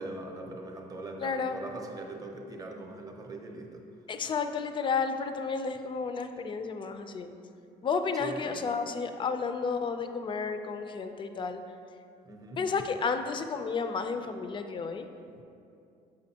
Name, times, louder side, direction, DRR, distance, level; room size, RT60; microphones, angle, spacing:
voice 1, 0.0-3.9 8.2-8.7 12.2-12.6, right 2 dB, 20° right, 2 dB, 0.7 m, -41 dB
voice 2, 1.2-1.6 4.1-7.3 7.8-11.6 12.6-15.1, left 5 dB, 30° left, 8 dB, 0.4 m, -32 dB
6.4 x 5.2 x 2.8 m, 2.5 s
cardioid pair, 110°, 17 cm